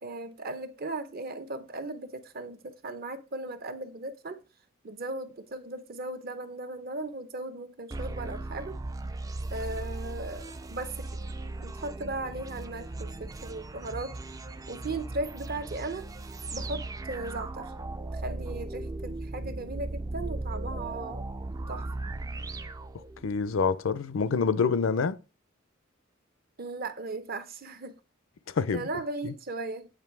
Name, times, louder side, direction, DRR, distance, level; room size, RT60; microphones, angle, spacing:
voice 1, 0.0-4.4 4.8-8.8 9.5-11.1 11.6-14.2 14.7-16.1 16.5-17.7 18.1-21.3 21.7-21.8 26.6-28.0 28.7-29.9, right 2 dB, 50° right, 0.7 m, -37 dB
sound 1, 7.9-23.5, right 2 dB, 15° right, 0.3 m, -37 dB
voice 2, 23.2-25.2 28.6-28.9 29.2-29.3, left 5 dB, 75° left, 0.5 m, -26 dB
8.9 x 3.1 x 4.6 m
head